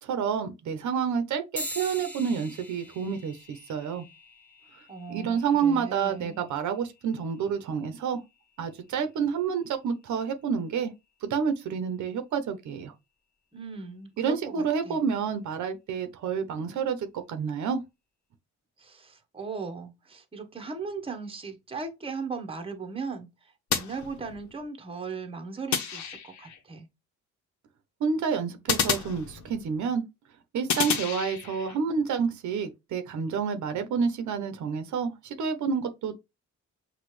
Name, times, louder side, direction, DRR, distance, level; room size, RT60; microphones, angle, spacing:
voice 1, 0.0-4.0 5.1-8.2 8.6-10.9 11.2-12.9 14.2-17.8 28.0-30.0 30.5-36.1, right 6 dB, 70° right, 0.9 m, -29 dB
sound 1, 1.6-11.4, equal, 5° left, 1.4 m, -45 dB
voice 2, 4.9-6.4 13.5-15.0 18.8-23.3 23.7-26.9, right 4 dB, 20° right, 1.0 m, -38 dB
sound 2, 23.7-24.6 25.7-26.6 28.7-29.8 30.7-31.8, left 7 dB, 70° left, 0.9 m, -30 dB
6.2 x 2.4 x 3.2 m
cardioid pair, 90°, 30 cm